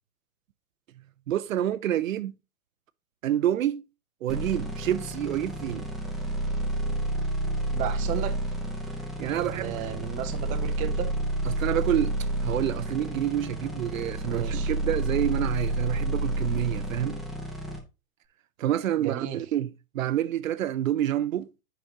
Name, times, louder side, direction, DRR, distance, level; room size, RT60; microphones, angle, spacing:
voice 1, 1.3-2.3 3.2-3.8 4.2-5.9 9.2-10.0 11.4-12.2 12.4-17.2 18.6-19.7 19.9-21.5, right 11 dB, 65° right, 0.6 m, -28 dB
sound 1, 4.3-17.8, right 1 dB, ahead, 0.9 m, -30 dB
voice 2, 7.7-8.4 9.3-11.1 14.3-14.7 19.0-19.4, right 11 dB, 20° right, 0.6 m, -34 dB
8.5 x 5.0 x 2.8 m
hypercardioid pair, 115°, 43 cm